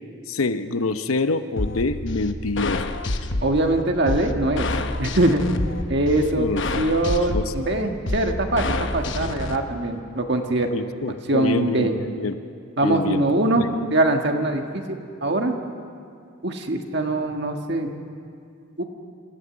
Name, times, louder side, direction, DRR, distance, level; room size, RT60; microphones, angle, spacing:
voice 1, 0.3-2.8 6.4-6.6 7.3-7.4 10.7-12.3 12.8-13.2 13.6-13.7, left 3 dB, 85° left, 10 dB, 0.8 m, -26 dB
sound 1, 1.6-9.6, left 2 dB, 60° left, 1.1 m, -28 dB
voice 2, 3.4-4.7 5.0-5.4 5.9-6.5 6.7-8.6 8.9-10.7 11.3-12.0 12.8-13.6 13.9-15.5 16.4-17.9 18.8-18.9, right 2 dB, 55° right, 3 dB, 1.6 m, -22 dB
27.0 x 15.0 x 8.6 m, 2.3 s
head